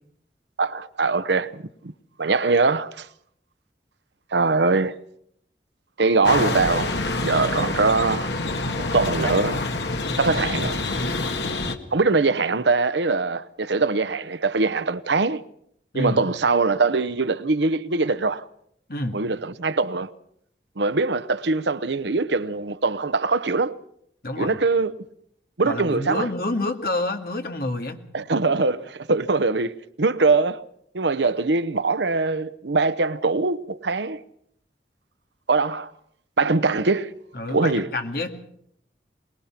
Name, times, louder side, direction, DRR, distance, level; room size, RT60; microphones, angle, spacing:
voice 1, 0.6-1.9 2.2-3.1 4.3-5.0 6.0-8.3 8.8-9.6 10.2-10.8 11.9-15.4 15.9-18.4 19.1-20.1 20.8-23.8 24.4-24.9 25.6-26.3 28.1-30.6 30.9-34.2 35.5-35.9 36.4-37.1 37.5-37.9, right 3 dB, 85° right, 0.9 m, -22 dB
sound 1, 6.2-11.8, left 2 dB, 80° left, 1.8 m, -26 dB
voice 2, 24.2-24.6 25.6-28.0 37.3-38.3, left 2 dB, 55° left, 2.3 m, -28 dB
22.5 x 21.0 x 5.9 m
head